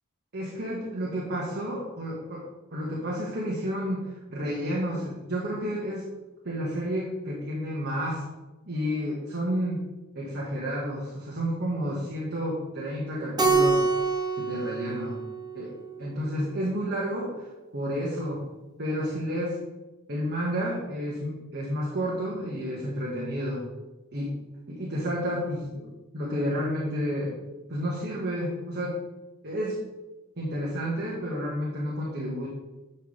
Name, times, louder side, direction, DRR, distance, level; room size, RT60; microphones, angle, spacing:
voice 1, 0.3-2.4 2.7-6.0 6.4-8.2 8.7-9.8 10.1-13.8 14.4-15.2 15.5-17.5 17.7-18.4 18.8-19.6 20.1-23.7 24.1-24.4 24.7-25.9 26.1-27.4 27.7-29.0 29.4-29.8 30.4-32.5, equal, 50° right, -5 dB, 1.8 m, -30 dB
Keyboard (musical), 13.4-16.0, right 4 dB, 20° right, 1.1 m, -26 dB
10.5 x 5.7 x 3.4 m, 1.1 s
head